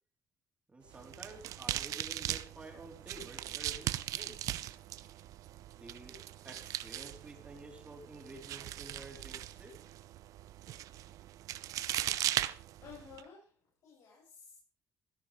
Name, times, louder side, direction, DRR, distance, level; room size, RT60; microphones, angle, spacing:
voice 1, 0.7-4.5 5.8-6.2 6.4-9.7, right 2 dB, 20° right, 0 dB, 3.9 m, -51 dB
sound 1, 0.9-13.2, right 13 dB, 80° right, 0.8 m, -39 dB
voice 2, 12.8-14.6, left 6 dB, 70° left, -4 dB, 7.9 m, -53 dB
17.5 x 9.9 x 5.2 m, 0.40 s
cardioid pair, 120°, 6 cm